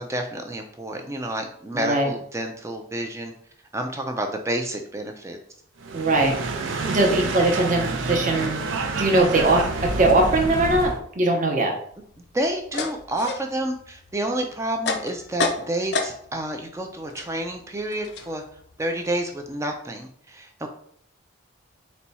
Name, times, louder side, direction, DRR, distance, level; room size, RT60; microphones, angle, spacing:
voice 1, 0.0-3.3 3.7-5.4 12.3-18.4 18.8-20.7, right 1 dB, 15° right, 4 dB, 0.3 m, -29 dB
voice 2, 1.7-2.1 5.9-6.4 6.9-8.6 9.0-11.7, right 2 dB, 40° right, 1 dB, 0.7 m, -21 dB
sound 1, 5.8-11.0, right 3 dB, 70° right, 0.5 m, -28 dB
sound 2, 11.9-16.5 16.8-19.7, left 4 dB, 55° left, 0.4 m, -31 dB
4.2 x 2.3 x 4.1 m, 0.64 s
head